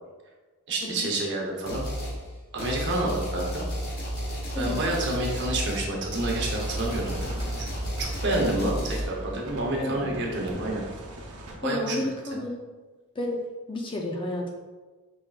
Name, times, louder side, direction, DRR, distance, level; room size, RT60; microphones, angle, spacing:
voice 1, 0.7-1.8 2.5-3.7 4.6-7.2 7.6-7.7 8.0-10.8 11.6-12.1, right 2 dB, 50° right, -1 dB, 0.8 m, -28 dB
sound 1, 1.7-2.2 2.6-9.0, equal, 45° left, 0.9 m, -32 dB
sound 2, 2.3-11.9, right 1 dB, 5° right, 1.2 m, -44 dB
sound 3, 6.1-11.6, right 1 dB, 85° right, 0.7 m, -42 dB
voice 2, 9.8-10.2 11.6-12.6 13.2-13.4 13.7-14.5, left 1 dB, 20° left, 0 dB, 0.4 m, -31 dB
5.0 x 3.6 x 2.4 m, 1.3 s
head